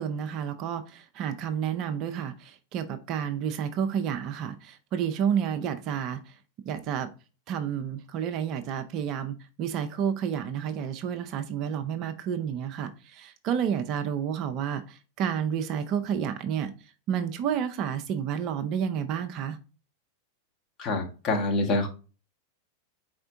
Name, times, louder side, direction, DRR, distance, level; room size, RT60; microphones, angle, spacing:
voice 1, 0.0-6.2 6.7-7.1 7.5-16.7 17.1-19.6, right 8 dB, 40° right, 0.5 m, -30 dB
voice 2, 20.8-21.9, left 2 dB, 35° left, 1.1 m, -26 dB
4.3 x 4.3 x 2.5 m
figure-of-eight pair, 90°, 0 cm